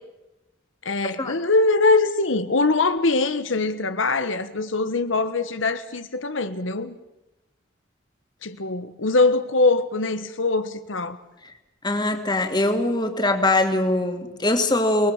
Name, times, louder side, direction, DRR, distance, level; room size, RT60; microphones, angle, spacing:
voice 1, 0.8-7.0 8.4-11.2, left 3 dB, 85° left, 1.3 m, -22 dB
voice 2, 11.8-15.1, left 2 dB, 20° left, 2.7 m, -22 dB
29.0 x 20.0 x 7.3 m
head